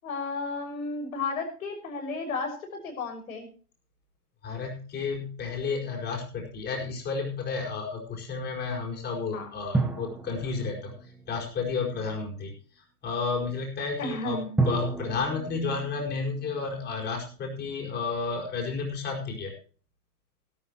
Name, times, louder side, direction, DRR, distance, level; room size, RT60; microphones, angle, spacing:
voice 1, 0.0-3.5 9.3-9.5 14.0-14.6, left 3 dB, 60° left, 4 dB, 6.0 m, -33 dB
voice 2, 4.4-10.9 11.3-12.5 13.0-14.4 14.6-19.5, left 4 dB, 20° left, 1 dB, 5.0 m, -31 dB
sound 1, 9.7-12.1 14.6-17.6, right 3 dB, 5° right, 1.8 m, -33 dB
17.5 x 12.5 x 3.0 m, 0.39 s
figure-of-eight pair, 110°, 46 cm